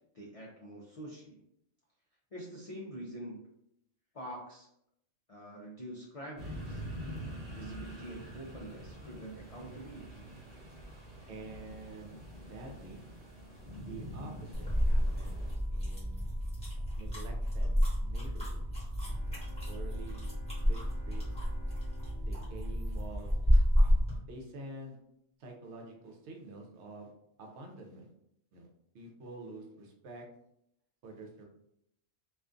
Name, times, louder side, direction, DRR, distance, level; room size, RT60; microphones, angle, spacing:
voice 1, 0.1-1.4 2.3-3.4 4.1-4.7 5.3-6.8 7.4-10.3, right 1 dB, 65° left, -4 dB, 0.3 m, -45 dB
sound 1, 6.4-15.6, equal, 35° right, 1.1 m, -45 dB
voice 2, 11.3-12.2 12.5-13.0 13.9-15.4 15.7-16.3 17.0-17.7 18.0-18.6 19.2-20.3 20.7-20.8 21.0-21.2 22.2-23.4 24.3-25.0 25.4-27.1 27.4-28.1 28.5-28.7 28.9-30.3 31.0-31.5, right 2 dB, 85° right, 2 dB, 0.9 m, -48 dB
sound 2, 14.5-24.2, equal, 5° left, 0.9 m, -30 dB
sound 3, 19.0-23.7, right 2 dB, 55° right, 1.2 m, -57 dB
2.4 x 2.3 x 2.4 m, 0.76 s
omnidirectional pair, 1.2 m